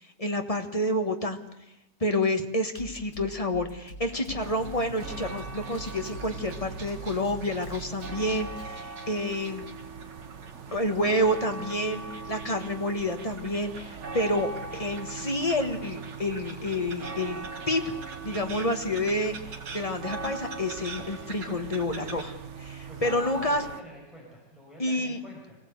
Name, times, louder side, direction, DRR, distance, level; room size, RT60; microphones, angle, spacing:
voice 1, 0.0-1.4 2.0-9.6 10.7-17.9 18.2-23.6 24.8-25.2, left 1 dB, 20° left, 6 dB, 1.4 m, -29 dB
Drum kit, 2.7-8.7, right 1 dB, 85° left, 3.6 m, -44 dB
sound 1, 4.1-22.2, right 4 dB, 90° right, 2.7 m, -47 dB
sound 2, 4.4-23.8, right 4 dB, 45° right, 1.2 m, -40 dB
voice 2, 22.9-25.6, right 1 dB, ahead, -3 dB, 5.7 m, -48 dB
24.5 x 16.5 x 8.1 m, 0.88 s
omnidirectional pair, 1.9 m